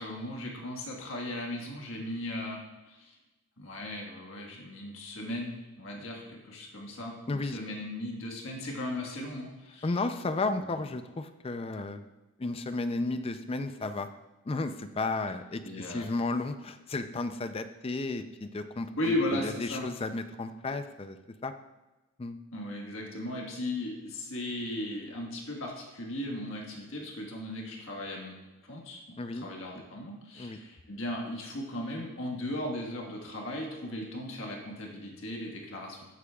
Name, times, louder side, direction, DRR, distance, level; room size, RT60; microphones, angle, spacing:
voice 1, 0.0-3.2 3.6-9.9 10.4-10.7 15.6-16.1 19.0-19.8 22.5-36.0, left 1 dB, 60° left, 0 dB, 1.5 m, -37 dB
voice 2, 7.3-7.6 9.8-12.0 12.4-14.1 14.5-21.2 21.4-21.5 22.2-22.4 29.2-29.5 30.4-30.6, left 3 dB, 25° left, 10 dB, 0.4 m, -33 dB
12.0 x 8.4 x 2.3 m, 1.1 s
head